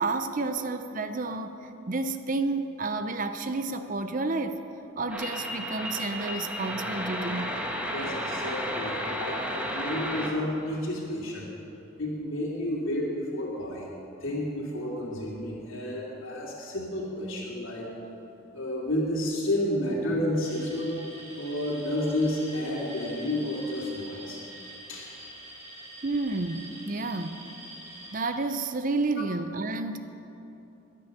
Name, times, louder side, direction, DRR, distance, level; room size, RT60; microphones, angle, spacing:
voice 1, 0.0-1.5 1.9-4.6 5.0-7.5 26.0-27.4 28.1-30.0, right 3 dB, 40° right, 9 dB, 0.7 m, -30 dB
sound 1, 5.1-10.3, equal, 5° right, 1.5 m, -33 dB
voice 2, 7.9-11.5 12.0-13.9 14.2-17.9 18.5-21.0 21.3-24.4 24.9-25.1, left 1 dB, 75° left, -5 dB, 2.9 m, -31 dB
Alarm, 20.3-28.3, right 1 dB, 55° right, 4.8 m, -45 dB
21.5 x 9.3 x 6.7 m, 3.0 s
head